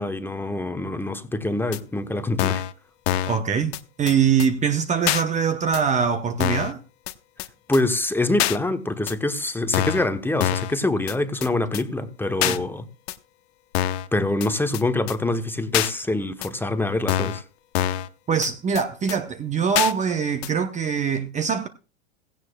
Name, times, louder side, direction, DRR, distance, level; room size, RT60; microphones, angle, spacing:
voice 1, 0.0-2.6 7.7-12.8 14.1-17.4, left 2 dB, 5° left, 1.0 m, -25 dB
sound 1, 1.7-1.8 2.4-2.7 3.1-3.4 3.7-3.8 4.1-4.2 4.4-4.5 5.1-5.2 5.7-5.8 6.4-6.7 7.1-7.2 7.4-7.5 7.7-7.8 8.4-8.6 9.1-9.2 9.7-10.1 10.4-10.7 11.1-11.2 11.4-11.5 11.7-11.8 12.4-12.6 13.1-13.2 13.7-14.1 14.4-14.5 14.7-14.8 15.1-15.2 15.7-15.9 16.4-16.5 17.1-17.4 17.7-18.1 18.4-18.5 18.7-18.8 19.1-19.2 19.7-19.9 20.4-20.5, left 13 dB, 65° left, 1.0 m, -24 dB
voice 2, 3.3-6.8 12.4-12.6 18.3-21.7, right 6 dB, 20° right, 0.8 m, -23 dB
16.5 x 16.0 x 2.3 m
hypercardioid pair, 110°, 35 cm